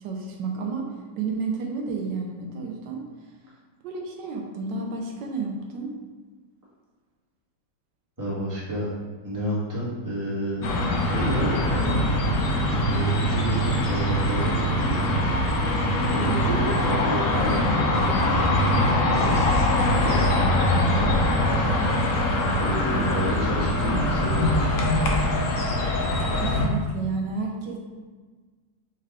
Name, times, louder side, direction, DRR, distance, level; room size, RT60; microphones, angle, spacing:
voice 1, 0.0-3.1 3.8-5.9 16.3-16.4 22.3-22.6 22.9-23.1 26.2-27.8, right 4 dB, 80° right, 1 dB, 1.3 m, -31 dB
voice 2, 8.2-8.9 9.2-10.7 11.0-12.0 12.9-15.2 16.1-19.4 19.8-21.1 22.6-24.6, right 1 dB, 10° right, -8 dB, 1.2 m, -30 dB
sound 1, 10.6-26.7, left 1 dB, 65° left, 0.9 m, -23 dB
4.5 x 3.2 x 3.6 m, 1.4 s
omnidirectional pair, 2.0 m